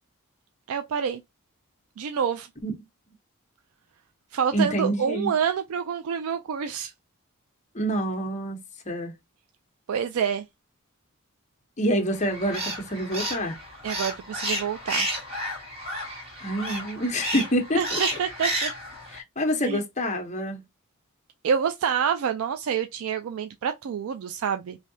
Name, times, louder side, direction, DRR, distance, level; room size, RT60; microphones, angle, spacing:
voice 1, 0.7-1.2 2.0-2.5 4.3-6.9 9.9-10.5 13.8-15.1 17.7-18.7 19.6-19.8 21.4-24.8, right 7 dB, 70° right, 0.3 m, -27 dB
voice 2, 4.5-5.3 7.7-9.1 11.8-13.6 16.4-18.0 19.1-20.6, equal, 30° left, 0.8 m, -27 dB
sound 1, 12.1-19.2, right 1 dB, 30° right, 1.5 m, -32 dB
3.3 x 2.7 x 2.6 m
head